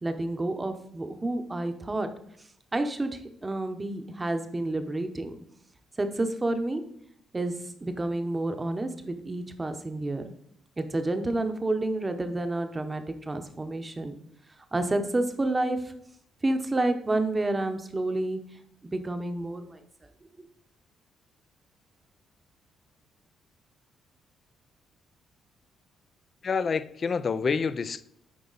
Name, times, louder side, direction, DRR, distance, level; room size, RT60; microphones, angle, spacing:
voice 1, 0.0-2.1 2.7-5.4 6.0-6.8 7.3-10.3 10.8-14.2 14.7-15.9 16.4-18.5 18.9-19.8, right 2 dB, 20° right, 0.9 m, -29 dB
voice 2, 26.4-28.0, left 5 dB, 45° left, 0.4 m, -27 dB
9.5 x 4.1 x 4.0 m
cardioid pair, 90°, 0 cm